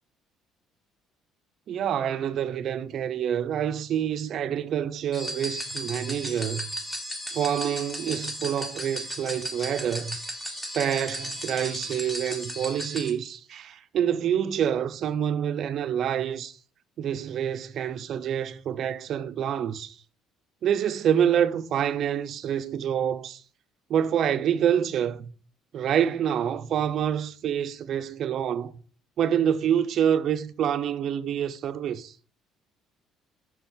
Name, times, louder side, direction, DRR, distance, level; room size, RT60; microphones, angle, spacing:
voice 1, 1.7-6.7 7.3-10.2 10.7-16.6 17.0-20.0 20.6-23.4 23.9-25.3 25.7-28.7 29.2-32.1, right 9 dB, 50° right, 0.4 m, -27 dB
sound 1, 5.1-13.1, equal, 5° left, 1.0 m, -35 dB
6.3 x 4.3 x 3.5 m
cardioid pair, 145°, 0 cm